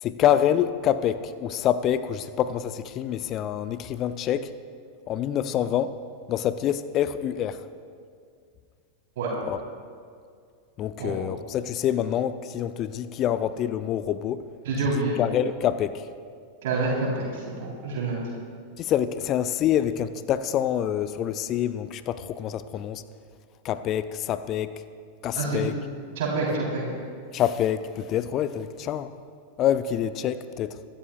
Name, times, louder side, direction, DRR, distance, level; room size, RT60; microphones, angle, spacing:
voice 1, 0.0-4.5 5.1-6.0 6.3-7.6 9.5-9.6 10.8-14.4 14.9-16.1 18.8-23.0 23.6-24.7 25.2-25.7 27.3-29.1 29.6-30.8, left 10 dB, 35° left, 14 dB, 0.5 m, -26 dB
voice 2, 14.7-15.2 16.6-17.2 17.6-18.2 25.4-25.6 26.2-26.8, right 3 dB, 55° right, -4 dB, 3.7 m, -27 dB
24.5 x 13.0 x 2.4 m, 2.2 s
figure-of-eight pair, 90°, 0 cm